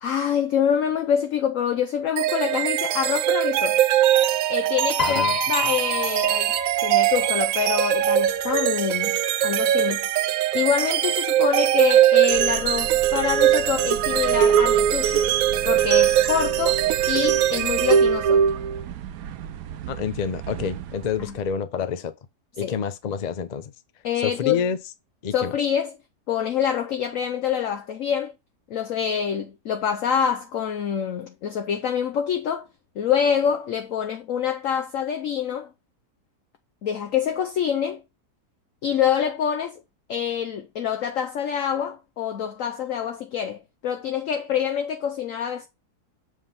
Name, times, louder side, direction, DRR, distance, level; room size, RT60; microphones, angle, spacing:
voice 1, 0.0-3.8 4.5-6.5 6.8-10.0 10.5-15.3 15.6-16.8 17.1-18.5 21.2-21.3 22.6-22.7 24.0-24.6 25.3-25.9 26.3-28.3 28.7-32.7 33.0-35.7 36.8-38.0 38.8-39.8 40.1-45.7, left 8 dB, 60° left, 1.0 m, -26 dB
sound 1, 2.2-18.8, right 11 dB, 70° right, 0.9 m, -21 dB
voice 2, 5.0-5.4 19.9-22.1 22.6-23.7 24.2-24.8 25.2-25.5, left 7 dB, 80° left, 0.3 m, -28 dB
Piano, 5.0-7.3 8.4-8.6, left 4 dB, 40° left, 0.6 m, -29 dB
sound 2, 12.3-21.5, right 10 dB, 85° right, 1.3 m, -37 dB
7.5 x 3.7 x 5.4 m
omnidirectional pair, 1.7 m